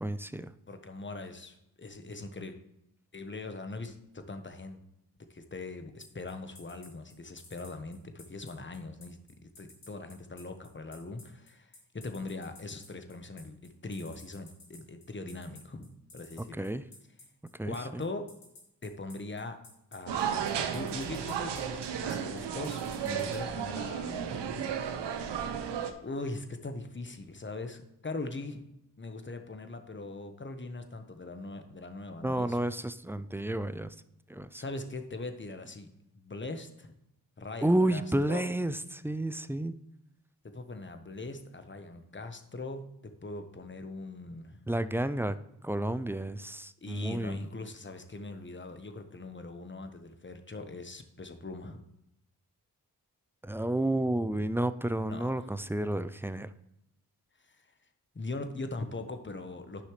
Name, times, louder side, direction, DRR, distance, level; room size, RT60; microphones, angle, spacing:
voice 1, 0.0-0.5 16.4-16.8 17.5-18.0 32.2-34.0 34.3-34.6 37.6-39.8 44.7-45.4 45.6-47.4 53.4-56.5, right 1 dB, 5° right, 13 dB, 0.4 m, -31 dB
voice 2, 0.7-2.6 3.1-4.8 5.3-9.2 9.4-16.5 17.7-18.2 18.8-19.6 19.9-24.7 26.0-28.6 29.0-32.6 34.6-35.9 36.1-36.9 37.4-38.0 38.3-38.5 40.4-42.8 43.2-44.6 46.8-51.8 55.1-55.5 57.4-57.6 58.1-59.8, left 2 dB, 30° left, 7 dB, 1.1 m, -41 dB
sound 1, 6.0-23.4, left 3 dB, 70° left, 2.7 m, -53 dB
sound 2, 20.1-25.9, right 8 dB, 90° right, 0.8 m, -34 dB
10.5 x 5.6 x 3.2 m, 0.83 s
cardioid pair, 45°, 41 cm